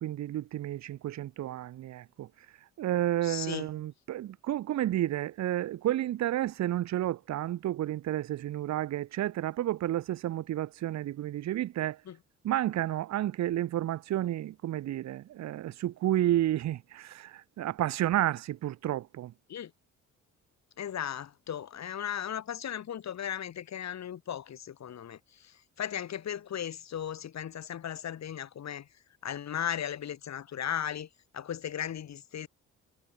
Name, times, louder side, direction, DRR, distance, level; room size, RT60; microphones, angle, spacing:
voice 1, 0.0-2.3 2.8-12.0 12.4-19.3, right 13 dB, 65° right, 0.9 m, -31 dB
voice 2, 3.2-3.7 12.1-12.2 19.5-19.7 20.8-28.9 29.2-31.1 31.3-32.5, left 9 dB, 60° left, 7.5 m, -36 dB
cardioid pair, 90°, 30 cm